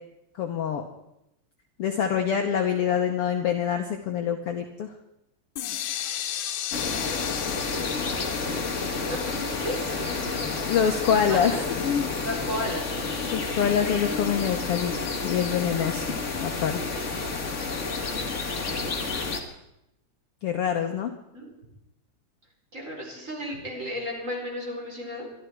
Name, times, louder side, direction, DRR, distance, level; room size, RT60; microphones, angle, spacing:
voice 1, 0.4-0.8 1.8-4.9 10.7-12.1 13.3-17.0 20.4-21.1, left 8 dB, 65° left, 4 dB, 1.6 m, -26 dB
sound 1, 5.6-11.4, left 11 dB, 85° left, 2.4 m, -35 dB
sound 2, 6.7-19.4, left 4 dB, 35° left, 1.3 m, -30 dB
voice 2, 8.2-10.7 11.3-11.6 12.2-12.9 18.7-19.2 21.3-21.5 22.7-25.3, equal, 25° right, -2 dB, 4.6 m, -35 dB
24.0 x 12.5 x 4.6 m, 0.85 s
omnidirectional pair, 3.4 m